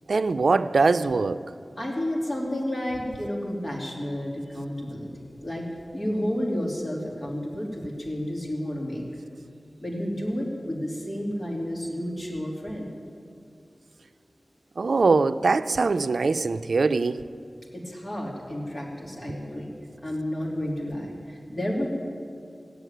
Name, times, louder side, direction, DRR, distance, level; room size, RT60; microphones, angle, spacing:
voice 1, 0.1-1.4 14.8-17.2, right 4 dB, 85° right, 13 dB, 0.4 m, -22 dB
voice 2, 1.8-5.6 5.9-9.0 9.8-12.9 17.7-19.7 20.0-21.9, equal, 35° left, -2 dB, 3.3 m, -31 dB
16.5 x 8.3 x 9.2 m, 2.4 s
wide cardioid pair, 75°, 0 cm